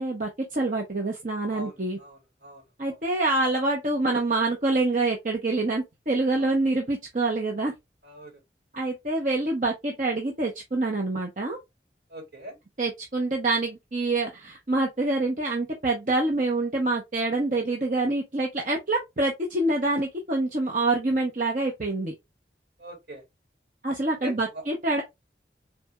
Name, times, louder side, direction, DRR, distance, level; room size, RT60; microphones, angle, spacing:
voice 1, 0.0-2.0 2.8-7.7 8.7-11.6 12.8-22.1 23.8-25.0, right 2 dB, 45° right, 1.0 m, -26 dB
voice 2, 1.5-3.0 6.4-6.6 8.0-8.4 12.1-12.6 22.8-23.2 24.2-24.6, equal, 70° right, 3.3 m, -42 dB
4.2 x 3.4 x 3.6 m
head